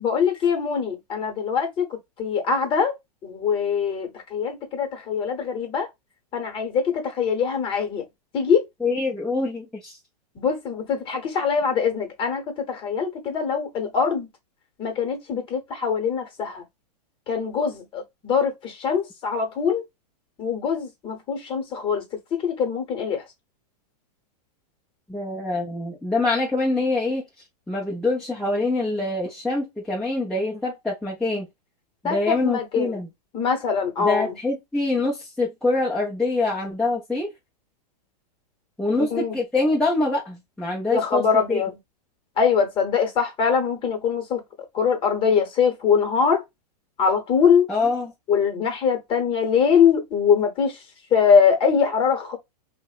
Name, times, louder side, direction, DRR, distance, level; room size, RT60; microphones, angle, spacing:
voice 1, 0.0-3.0 3.2-5.9 6.3-8.0 8.3-8.6 10.3-14.3 14.8-16.6 17.3-19.8 20.4-22.0 22.3-23.2 32.0-33.0 33.3-34.3 39.0-39.3 40.9-41.8 42.4-44.4 44.7-46.4 47.0-47.7 48.3-50.8 51.1-52.4, left 6 dB, 25° left, 0.9 m, -23 dB
voice 2, 8.8-10.0 25.1-27.2 27.7-31.5 32.0-33.1 34.0-37.3 38.8-41.6 47.7-48.1, left 2 dB, 5° left, 0.4 m, -25 dB
2.7 x 2.1 x 2.4 m
hypercardioid pair, 140°, 21 cm